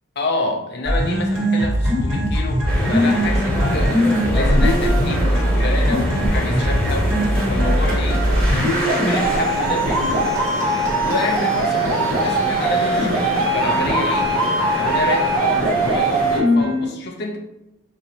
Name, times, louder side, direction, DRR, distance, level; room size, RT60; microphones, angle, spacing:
voice 1, 0.2-4.1 4.3-7.1 7.5-10.4 11.0-14.3 14.7-17.4, left 2 dB, 50° left, 2 dB, 0.5 m, -28 dB
sound 1, 0.8-16.9, right 1 dB, 75° right, 1.1 m, -20 dB
sound 2, 2.7-16.4, equal, 5° left, 0.7 m, -25 dB
4.2 x 2.2 x 2.7 m, 0.91 s
head